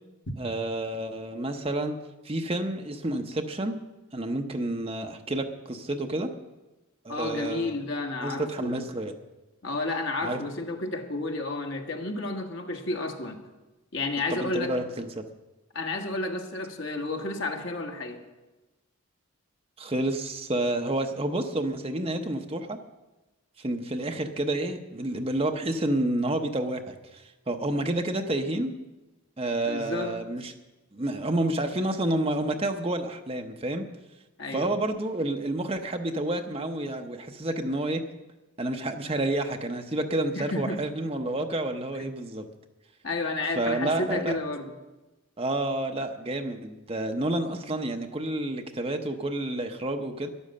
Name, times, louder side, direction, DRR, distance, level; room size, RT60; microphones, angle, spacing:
voice 1, 0.4-2.0 2.2-3.8 4.1-6.3 7.0-7.7 8.2-9.1 10.2-10.4 14.3-15.2 19.8-22.8 23.6-28.7 29.4-30.5 30.9-33.8 34.5-38.0 38.6-42.5 43.6-44.4 45.4-50.3, right 1 dB, 25° right, 5 dB, 0.8 m, -29 dB
voice 2, 7.1-8.8 9.6-13.4 13.9-14.8 15.7-18.2 29.6-30.2 34.4-34.8 40.3-40.8 42.0-42.1 43.0-44.7, left 2 dB, 60° left, 2 dB, 1.6 m, -31 dB
12.5 x 11.0 x 6.6 m, 1.1 s
head